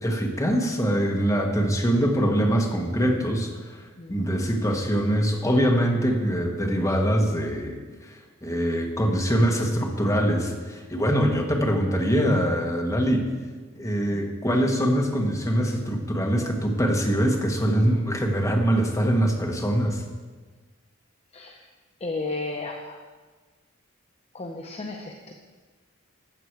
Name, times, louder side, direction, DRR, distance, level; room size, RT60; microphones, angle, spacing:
voice 1, 0.0-3.8 4.1-8.1 8.4-13.3 13.8-20.0, equal, 15° left, 1 dB, 1.3 m, -23 dB
voice 2, 22.0-23.0 24.3-25.3, left 2 dB, 30° left, 2 dB, 0.7 m, -33 dB
13.0 x 8.1 x 4.7 m, 1.4 s
head